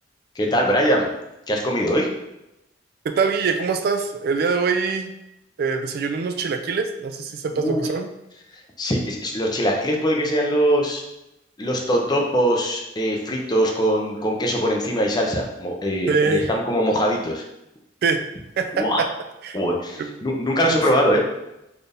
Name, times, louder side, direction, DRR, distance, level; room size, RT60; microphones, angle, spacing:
voice 1, 0.4-1.1 1.5-2.1 7.5-7.8 8.8-11.0 11.6-17.4 18.7-19.0 19.5-21.3, equal, 25° left, 0 dB, 0.6 m, -22 dB
voice 2, 3.2-5.1 5.6-8.1 16.1-16.5 18.0-18.2 18.6-19.1 19.4-19.6 20.0-20.1 20.6-20.8, right 4 dB, 55° right, 6 dB, 0.3 m, -23 dB
4.2 x 2.5 x 3.4 m, 0.90 s
head